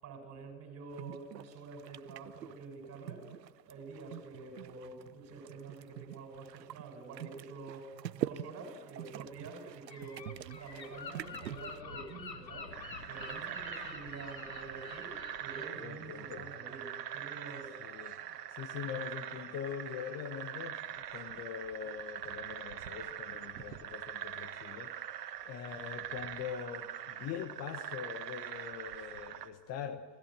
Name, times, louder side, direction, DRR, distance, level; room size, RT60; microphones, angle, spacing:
voice 1, 0.0-3.3 3.7-12.8 13.1-17.8, right 3 dB, 30° right, 4 dB, 6.7 m, -47 dB
sound 1, 0.9-11.8, right 12 dB, 85° right, 0.7 m, -45 dB
Gull seagull, 9.9-15.7, left 5 dB, 85° left, 2.3 m, -47 dB
sound 2, 12.7-29.5, right 10 dB, 70° right, 1.7 m, -43 dB
voice 2, 15.8-16.5 17.8-18.2 18.5-30.0, left 8 dB, 30° left, 9 dB, 1.3 m, -43 dB
28.0 x 18.5 x 7.6 m, 1.3 s
hypercardioid pair, 105°, 49 cm